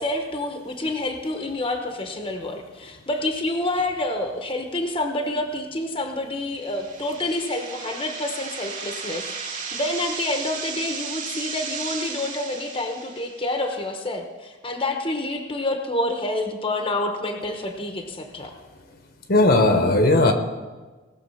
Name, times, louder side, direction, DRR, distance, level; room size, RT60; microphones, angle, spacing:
voice 1, 0.0-18.5, left 1 dB, 30° left, 4 dB, 1.0 m, -28 dB
sound 1, 6.6-13.5, right 5 dB, 40° right, 2.5 m, -34 dB
voice 2, 19.3-20.3, left 2 dB, 50° left, 6 dB, 1.1 m, -17 dB
18.5 x 6.8 x 5.6 m, 1.3 s
head